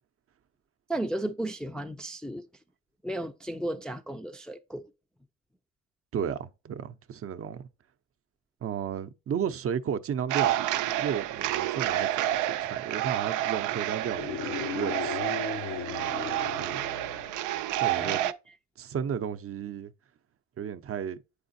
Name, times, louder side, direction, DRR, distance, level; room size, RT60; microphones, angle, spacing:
voice 1, 0.9-2.4 3.0-4.8 18.0-18.4, right 1 dB, ahead, 0.4 m, -34 dB
voice 2, 6.1-7.7 8.6-15.4 16.6-16.8 17.8-18.2 18.8-19.9 20.6-21.2, right 8 dB, 50° right, 0.6 m, -33 dB
sound 1, 10.3-18.3, right 13 dB, 90° right, 0.5 m, -30 dB
sound 2, 14.0-17.7, left 8 dB, 85° left, 0.7 m, -37 dB
7.8 x 4.9 x 2.6 m
cardioid pair, 90°, 30 cm